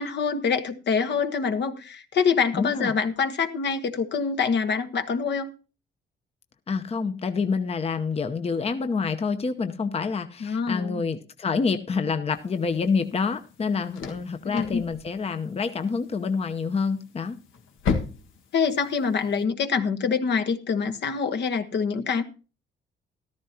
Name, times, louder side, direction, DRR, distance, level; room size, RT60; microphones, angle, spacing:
voice 1, 0.0-5.5 10.4-11.0 14.4-14.8 18.5-22.2, left 5 dB, 60° left, 1.3 m, -25 dB
voice 2, 2.5-2.9 6.7-17.4, left 5 dB, 30° left, 0.8 m, -27 dB
sound 1, 12.3-19.4, left 5 dB, 85° left, 1.7 m, -36 dB
14.0 x 13.0 x 2.9 m
cardioid pair, 90°, 20 cm